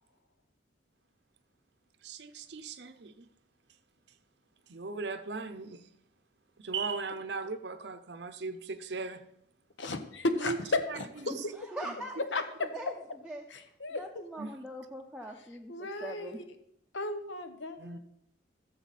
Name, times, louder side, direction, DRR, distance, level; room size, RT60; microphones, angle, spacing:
voice 1, 2.0-3.3 4.7-5.8 6.6-9.2 10.4-10.6 10.9-11.0 11.2-11.4 11.9-12.0 14.4-14.5 17.8-18.0, right 4 dB, 60° right, 0.7 m, -38 dB
voice 2, 9.8-10.5 11.0-11.1 12.3-12.4 13.5-14.2 15.7-16.4 16.9-18.0, left 2 dB, 75° left, 1.1 m, -35 dB
voice 3, 11.3-12.2 12.7-12.9 13.2-13.5 13.9-16.4, right 1 dB, 5° right, 0.7 m, -42 dB
14.0 x 7.0 x 4.2 m
head